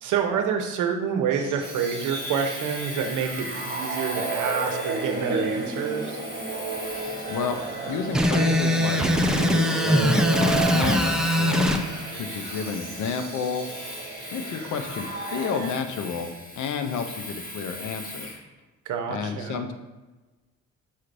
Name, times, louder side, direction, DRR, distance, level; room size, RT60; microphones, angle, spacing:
voice 1, 0.0-6.2 18.9-19.6, right 7 dB, 80° right, 4 dB, 0.7 m, -27 dB
sound 1, 1.3-15.7, right 3 dB, 35° right, 1.2 m, -33 dB
Domestic sounds home sounds, 1.6-18.4, left 1 dB, 30° left, 1.0 m, -40 dB
voice 2, 7.3-7.6 7.9-9.0 9.4-11.8 12.1-13.7 14.3-18.3 19.1-19.7, left 6 dB, 75° left, 7 dB, 0.6 m, -30 dB
sound 2, 8.1-11.8, equal, ahead, 0.3 m, -21 dB
5.6 x 3.2 x 2.5 m, 1.2 s
cardioid pair, 90°, 30 cm